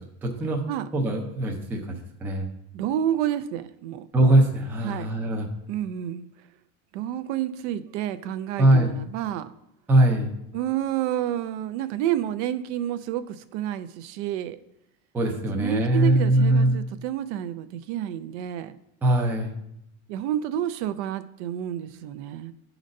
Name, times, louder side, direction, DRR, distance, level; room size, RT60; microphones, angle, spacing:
voice 1, 0.2-0.6 0.9-2.5 4.1-5.5 8.6-8.9 9.9-10.3 15.1-16.8 19.0-19.5, right 1 dB, 5° right, 0 dB, 0.4 m, -21 dB
voice 2, 2.7-4.1 4.8-5.2 5.7-6.3 6.9-9.5 10.5-14.6 15.5-18.8 20.1-22.5, right 11 dB, 60° right, 12 dB, 0.5 m, -29 dB
8.5 x 4.0 x 5.2 m, 0.79 s
cardioid pair, 175°, 40 cm